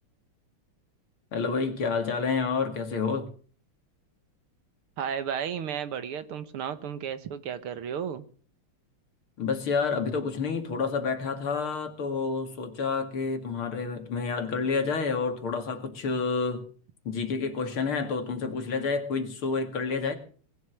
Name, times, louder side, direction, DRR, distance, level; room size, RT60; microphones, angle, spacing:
voice 1, 1.3-3.3 9.4-16.6 17.0-20.2, left 4 dB, 70° left, 3.1 m, -29 dB
voice 2, 5.0-8.2, right 8 dB, 75° right, 2.1 m, -33 dB
20.0 x 11.5 x 6.3 m
omnidirectional pair, 2.4 m